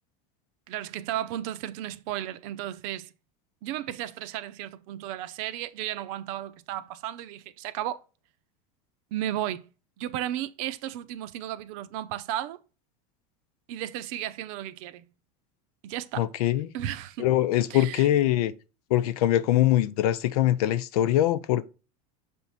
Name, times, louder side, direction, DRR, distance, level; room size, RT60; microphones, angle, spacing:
voice 1, 0.7-3.1 3.6-8.0 9.1-9.7 10.0-12.6 13.7-15.1 15.8-16.3 16.7-17.3 17.7-18.1, right 12 dB, 65° right, 0.7 m, -34 dB
voice 2, 16.2-16.7 17.2-18.5 18.9-21.7, left 13 dB, 80° left, 0.7 m, -23 dB
6.9 x 3.6 x 4.2 m
supercardioid pair, 135°, 19 cm